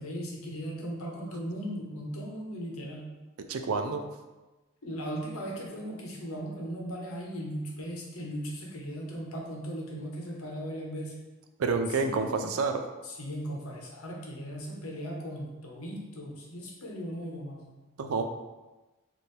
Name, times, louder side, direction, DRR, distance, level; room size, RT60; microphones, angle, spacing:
voice 1, 0.0-3.1 4.8-11.1 12.0-12.5 13.0-17.7, equal, 85° left, -1 dB, 0.9 m, -38 dB
voice 2, 3.5-4.1 11.6-12.8 18.0-18.2, right 4 dB, 85° right, 6 dB, 0.4 m, -28 dB
4.4 x 2.7 x 3.2 m, 1.1 s
head